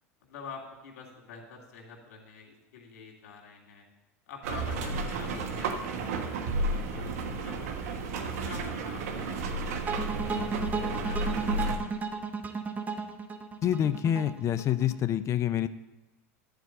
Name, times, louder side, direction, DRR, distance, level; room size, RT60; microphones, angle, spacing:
voice 1, 0.3-3.9 4.3-12.3, left 5 dB, 75° left, 1 dB, 2.5 m, -47 dB
sound 1, 4.4-11.8, right 2 dB, 75° right, 1.3 m, -32 dB
sound 2, 9.9-15.0, right 4 dB, 20° right, 1.0 m, -34 dB
voice 2, 13.6-15.7, left 10 dB, 35° left, 13 dB, 0.5 m, -27 dB
11.5 x 4.6 x 8.0 m, 1.0 s
hypercardioid pair, 100°, 8 cm